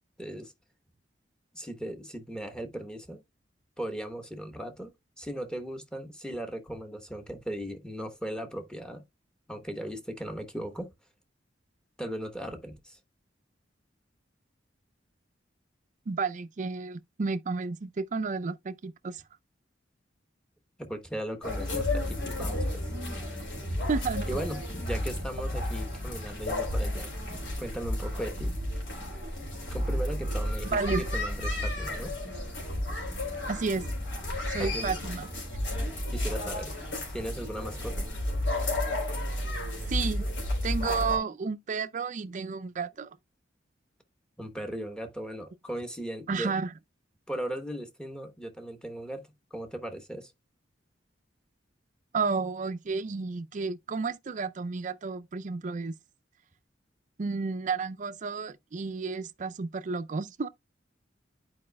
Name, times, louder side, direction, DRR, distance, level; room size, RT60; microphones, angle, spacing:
voice 1, 0.2-0.5 1.5-3.2 3.8-9.0 9.5-10.9 12.0-13.0 20.8-22.9 24.2-27.1 27.6-28.5 29.7-32.1 34.6-35.0 36.1-36.7 37.1-38.1 44.4-46.5 47.3-50.3, right 1 dB, 5° left, 1.0 m, -37 dB
voice 2, 16.1-19.2 23.9-24.4 30.7-31.0 33.5-33.9 34.5-35.3 39.9-40.3 40.6-43.1 46.3-46.7 52.1-55.9 57.2-60.5, right 4 dB, 45° right, 0.4 m, -31 dB
sound 1, 21.4-41.2, left 1 dB, 85° left, 3.5 m, -32 dB
11.0 x 4.8 x 2.2 m
head